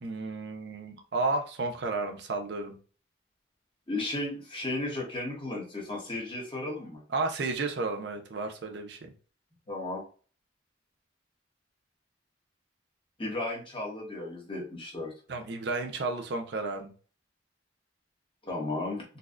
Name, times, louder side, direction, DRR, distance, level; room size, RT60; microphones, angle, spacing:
voice 1, 0.0-2.8 7.1-9.0 15.3-16.9, right 3 dB, 60° right, 4 dB, 0.5 m, -32 dB
voice 2, 3.9-7.0 9.7-10.0 13.2-15.1 18.4-19.0, left 2 dB, 25° left, -2 dB, 1.1 m, -34 dB
4.1 x 2.3 x 2.4 m, 0.38 s
head